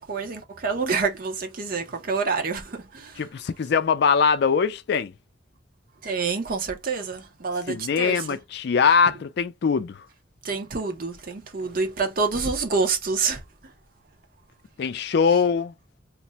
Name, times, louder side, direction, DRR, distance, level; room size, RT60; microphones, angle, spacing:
voice 1, 0.0-3.3 6.0-8.4 9.1-9.2 10.4-13.7, right 4 dB, 50° right, 0.7 m, -27 dB
voice 2, 3.2-5.1 7.7-10.1 14.8-15.7, left 6 dB, 60° left, 0.4 m, -22 dB
2.5 x 2.1 x 4.0 m
head